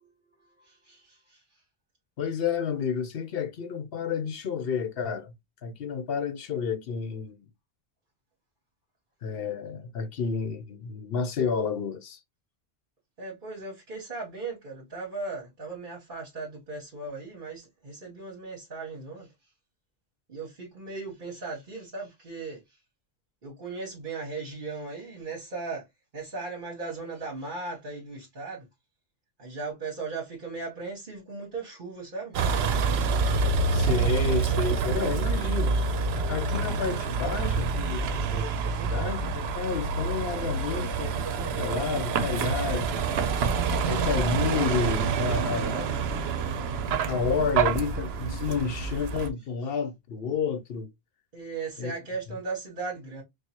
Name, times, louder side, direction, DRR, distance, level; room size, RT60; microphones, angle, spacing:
voice 1, 0.6-1.4 13.2-19.3 20.3-22.6 23.4-25.8 26.1-28.6 29.4-32.3 51.3-53.2, right 3 dB, 55° right, 1.4 m, -37 dB
voice 2, 2.2-5.3 5.6-7.5 9.2-12.2 33.7-35.7 36.1-43.1 43.9-46.0 47.1-50.9 51.8-51.9, left 6 dB, 70° left, 0.9 m, -30 dB
Vehicle, 32.3-49.3, right 5 dB, 80° right, 0.8 m, -27 dB
4.6 x 2.2 x 2.9 m
omnidirectional pair, 1.1 m